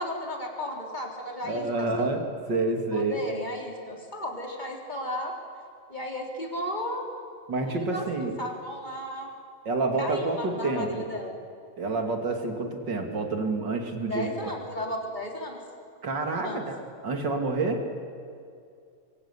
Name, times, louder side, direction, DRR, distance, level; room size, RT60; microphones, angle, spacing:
voice 1, 0.0-2.2 2.9-5.3 5.9-7.0 7.7-8.0 8.4-9.3 10.0-11.3 14.1-15.6 16.4-16.7, left 1 dB, 10° left, 0 dB, 3.7 m, -34 dB
voice 2, 1.4-2.2 2.5-3.2 7.5-8.4 9.6-11.1 11.8-14.5 16.0-16.7 17.0-17.8, right 3 dB, 35° right, 4 dB, 2.8 m, -28 dB
26.0 x 23.0 x 9.9 m, 2.3 s
omnidirectional pair, 4.0 m